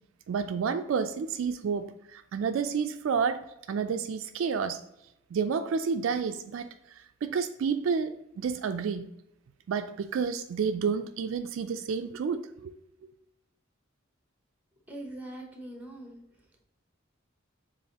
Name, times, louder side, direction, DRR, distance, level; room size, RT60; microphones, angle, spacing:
voice 1, 0.3-3.4 3.7-4.8 5.3-6.7 7.0-9.1 9.7-12.7, right 6 dB, 70° right, 0.3 m, -30 dB
voice 2, 14.9-16.2, right 1 dB, 10° right, 0.8 m, -42 dB
7.1 x 2.6 x 2.8 m
head